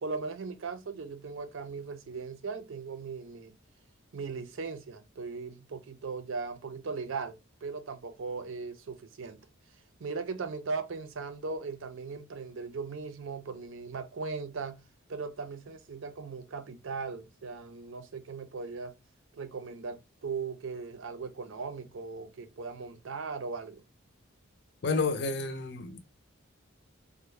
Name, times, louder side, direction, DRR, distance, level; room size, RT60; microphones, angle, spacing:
voice 1, 0.0-3.6 4.1-9.5 10.0-14.8 15.1-19.0 19.3-23.8, right 4 dB, 65° right, 0.5 m, -38 dB
voice 2, 24.8-26.0, left 4 dB, 50° left, 0.5 m, -30 dB
3.5 x 2.1 x 3.1 m
head